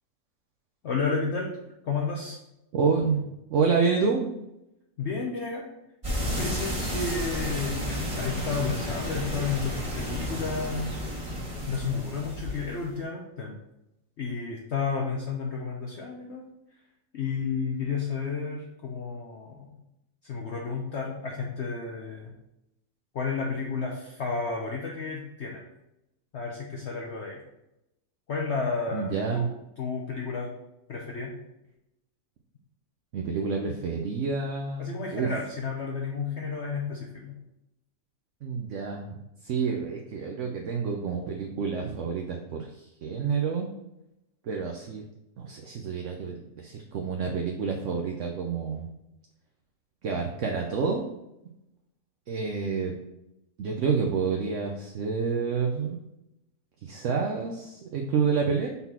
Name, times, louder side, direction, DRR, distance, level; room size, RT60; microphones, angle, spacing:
voice 1, 0.8-1.5 1.8-2.4 5.0-5.6 6.4-10.9 11.7-13.6 14.2-16.5 17.1-19.7 20.2-22.3 23.1-25.7 26.3-27.4 28.3-30.5 30.9-31.4 34.8-37.3, left 5 dB, 55° left, -1 dB, 0.9 m, -32 dB
voice 2, 2.7-3.2 3.5-4.3 28.9-29.4 33.1-35.3 38.4-39.2 39.4-43.7 44.5-45.0 45.4-48.9 50.0-51.2 52.3-52.9 53.6-56.0 56.8-58.7, right 5 dB, 65° right, 2 dB, 0.9 m, -28 dB
sound 1, 6.0-12.9, equal, 20° right, 1.6 m, -32 dB
5.5 x 4.0 x 4.3 m, 0.88 s
omnidirectional pair, 1.6 m